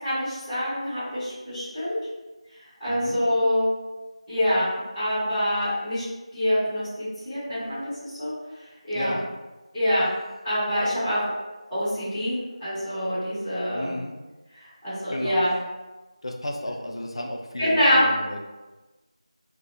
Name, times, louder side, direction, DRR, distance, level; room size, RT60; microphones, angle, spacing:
voice 1, 0.0-2.0 2.8-3.7 4.3-6.0 6.3-8.3 8.8-9.1 9.7-10.1 10.4-11.2 11.7-13.9 14.8-15.5 17.6-18.1, equal, 5° left, -19 dB, 0.9 m, -25 dB
voice 2, 2.9-3.2 8.9-9.3 13.7-14.1 15.1-15.4 16.2-18.5, left 1 dB, 55° left, 2 dB, 0.3 m, -33 dB
2.5 x 2.2 x 2.7 m, 1.1 s
figure-of-eight pair, 175°, 4 cm